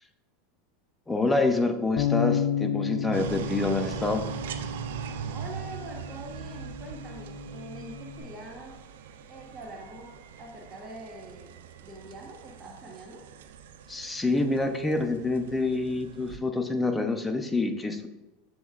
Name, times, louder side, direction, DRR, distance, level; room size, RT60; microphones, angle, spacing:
voice 1, 1.1-4.2 13.9-18.1, left 2 dB, 10° left, 6 dB, 0.5 m, -27 dB
Bass guitar, 2.0-8.2, left 7 dB, 65° left, 0.4 m, -32 dB
sound 1, 3.1-16.4, right 9 dB, 75° right, 0.3 m, -42 dB
voice 2, 5.3-8.7 9.3-10.1 10.4-13.2, right 2 dB, 20° right, -1 dB, 0.9 m, -44 dB
7.0 x 3.1 x 2.4 m, 1.1 s
hypercardioid pair, 105°, 0 cm